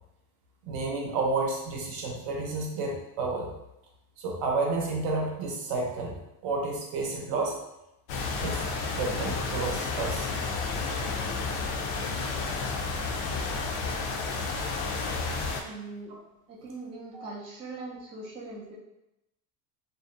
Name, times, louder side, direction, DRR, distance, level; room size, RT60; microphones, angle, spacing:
voice 1, 0.6-3.5 4.2-6.2 6.4-7.6 8.4-8.6 8.9-10.3 17.1-17.2, right 3 dB, 55° right, 0 dB, 0.7 m, -30 dB
sound 1, 8.1-15.6, left 4 dB, 55° left, 0.5 m, -31 dB
voice 2, 14.1-14.4 15.6-16.1 16.5-18.7, right 3 dB, 15° right, -7 dB, 0.3 m, -41 dB
2.6 x 2.1 x 2.5 m, 0.89 s
supercardioid pair, 120°, 48 cm